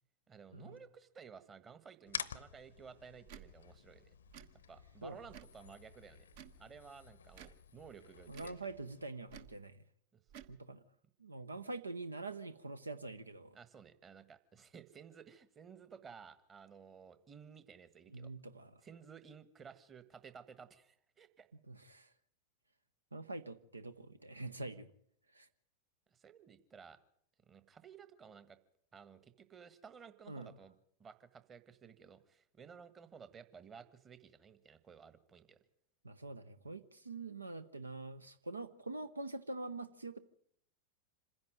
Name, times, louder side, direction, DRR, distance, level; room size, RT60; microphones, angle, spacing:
voice 1, 0.3-4.1 4.7-6.3 6.6-8.6 10.1-10.2 13.5-18.3 18.8-21.5 26.1-27.0 27.4-28.6 28.9-30.7 31.0-35.6, right 6 dB, 20° right, 13 dB, 1.5 m, -55 dB
sound 1, 2.1-9.1, left 8 dB, 70° left, 0.7 m, -50 dB
Tick / Tick-tock, 3.3-3.5 4.3-4.5 5.3-5.6 6.3-6.6 7.3-7.6 8.3-8.6 9.3-9.6 10.3-10.5, right 10 dB, 50° right, 1.2 m, -54 dB
voice 2, 8.3-9.8 10.5-10.8 11.2-13.6 18.1-18.7 21.7-22.1 23.1-24.9 25.3-25.5 30.3-30.5 36.0-40.2, right 2 dB, 80° right, 14 dB, 0.8 m, -45 dB
26.5 x 10.5 x 9.2 m, 0.69 s
figure-of-eight pair, 90°, 0 cm